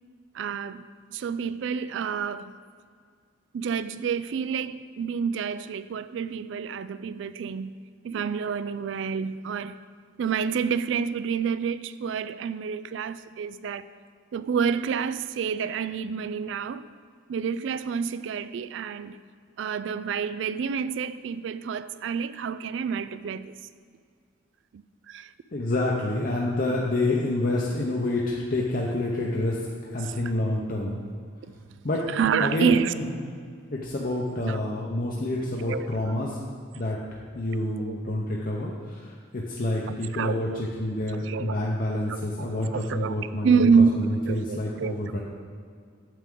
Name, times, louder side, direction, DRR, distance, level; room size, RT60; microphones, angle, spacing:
voice 1, 0.3-0.8 1.1-2.5 3.5-7.7 8.0-9.8 10.2-13.8 14.3-16.9 17.3-19.2 19.6-23.5 24.7-25.3 30.1-30.2 32.1-32.9 34.4-34.6 35.7-35.8 36.1-36.2 37.8-38.1 40.1-40.6 41.1-41.6 42.1-43.2 43.4-43.9 44.3-44.9, right 6 dB, 65° right, 15 dB, 0.3 m, -28 dB
voice 2, 25.5-31.0 31.8-32.0 32.4-33.4 33.7-36.4 36.7-37.0 37.3-45.2, left 1 dB, 45° left, -3 dB, 0.8 m, -28 dB
9.1 x 7.4 x 3.7 m, 2.1 s
head